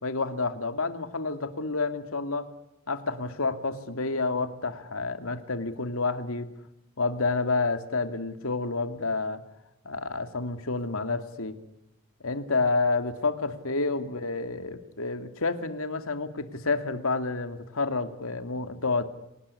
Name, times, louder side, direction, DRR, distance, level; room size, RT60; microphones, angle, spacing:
voice 1, 0.0-2.5 2.9-6.5 7.0-9.4 9.8-11.6 12.2-19.0, left 3 dB, 75° left, 9 dB, 2.5 m, -29 dB
28.0 x 19.5 x 9.8 m, 0.91 s
head